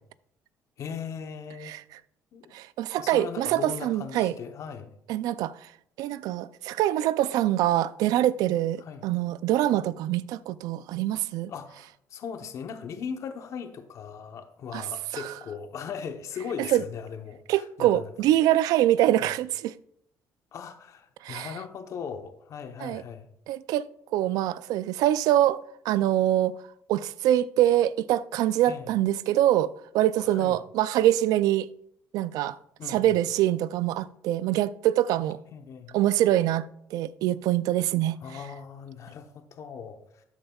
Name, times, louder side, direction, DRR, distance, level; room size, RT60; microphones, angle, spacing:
voice 1, 0.8-1.7 2.3-2.5 3.0-4.9 8.8-9.0 11.5-18.1 19.1-19.3 20.5-23.3 28.7-28.9 30.2-30.6 32.8-33.2 35.5-36.0 38.2-40.2, left 6 dB, 55° left, 0.9 m, -39 dB
voice 2, 2.5-4.3 5.1-5.5 6.0-11.5 14.7-14.8 15.1-15.3 16.6-16.8 17.5-19.7 21.2-21.5 22.8-23.0 23.5-23.9 24.1-25.6 25.8-26.5 26.9-31.7 32.1-32.6 32.9-35.4 35.9-38.2, right 13 dB, 80° right, 0.4 m, -24 dB
12.5 x 8.8 x 2.3 m
cardioid pair, 115°, 6 cm